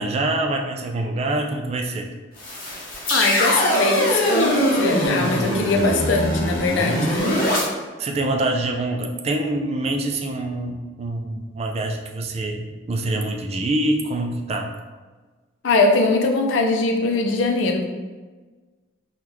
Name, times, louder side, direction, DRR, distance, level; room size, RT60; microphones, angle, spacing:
voice 1, 0.0-2.1 8.0-14.7, right 2 dB, 35° right, 3 dB, 0.3 m, -25 dB
sound 1, 2.4-7.6, equal, 50° left, 0.8 m, -22 dB
voice 2, 3.1-7.4 15.6-17.9, left 3 dB, 90° left, 3 dB, 0.5 m, -21 dB
3.6 x 2.3 x 3.0 m, 1.3 s
head